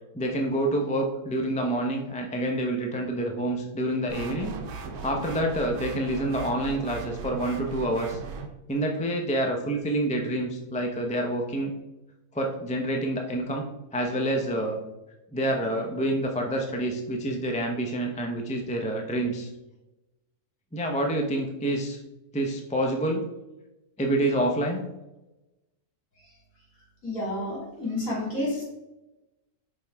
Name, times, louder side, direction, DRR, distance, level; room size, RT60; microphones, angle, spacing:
voice 1, 0.1-4.5 5.0-8.2 8.7-11.7 12.3-13.6 13.9-14.8 15.3-19.5 20.7-22.0 22.3-23.2 24.0-24.8, right 1 dB, 5° left, 2 dB, 0.5 m, -27 dB
sound 1, 4.1-8.5, right 4 dB, 75° right, 1.3 m, -37 dB
voice 2, 27.0-28.6, left 1 dB, 60° left, -5 dB, 3.1 m, -30 dB
7.4 x 5.2 x 3.5 m, 0.98 s
omnidirectional pair, 1.6 m